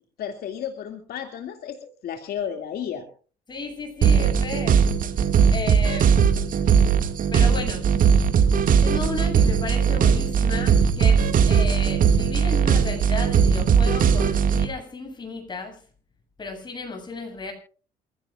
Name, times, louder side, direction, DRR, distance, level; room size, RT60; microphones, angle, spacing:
voice 1, 0.2-3.1, left 8 dB, 65° left, 5 dB, 2.5 m, -33 dB
voice 2, 3.5-4.9 5.5-6.5 7.3-7.9 8.7-15.8 16.4-17.5, left 3 dB, 25° left, 4 dB, 7.9 m, -34 dB
sound 1, 4.0-14.7, right 6 dB, 55° right, 2.1 m, -19 dB
27.5 x 16.5 x 2.5 m, 0.41 s
cardioid pair, 110°, 17 cm